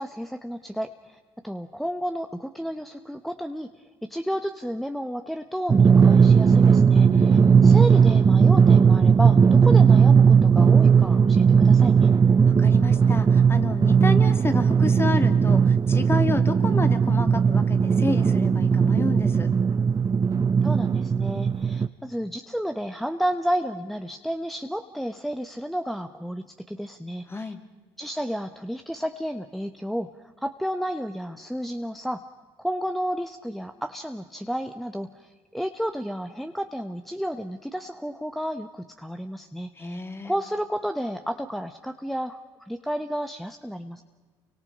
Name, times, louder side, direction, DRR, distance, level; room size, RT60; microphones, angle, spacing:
voice 1, 0.0-12.1 20.6-27.5 28.0-32.2 32.6-44.0, equal, ahead, 7 dB, 1.1 m, -32 dB
Drum, 5.7-21.9, right 6 dB, 30° right, 0.8 m, -17 dB
voice 2, 7.1-7.8 12.4-19.5 27.3-27.6 39.8-40.3, left 3 dB, 20° left, 8 dB, 2.3 m, -30 dB
29.0 x 24.5 x 5.3 m, 1.4 s
supercardioid pair, 70°, 12 cm